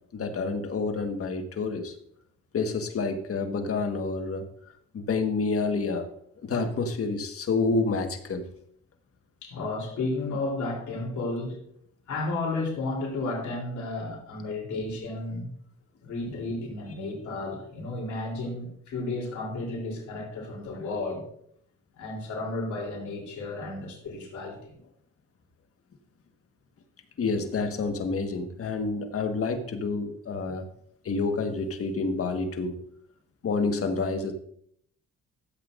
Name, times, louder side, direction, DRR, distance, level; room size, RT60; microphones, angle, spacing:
voice 1, 0.1-1.9 2.5-4.5 4.9-6.1 6.4-8.5 27.2-30.7 31.0-32.8 33.4-34.3, left 4 dB, 50° left, 6 dB, 1.5 m, -28 dB
voice 2, 9.4-11.6 12.1-15.5 16.0-21.2 22.0-24.7, left 2 dB, 75° left, -2 dB, 3.5 m, -33 dB
13.5 x 8.0 x 2.6 m, 0.67 s
cardioid pair, 90°, 30 cm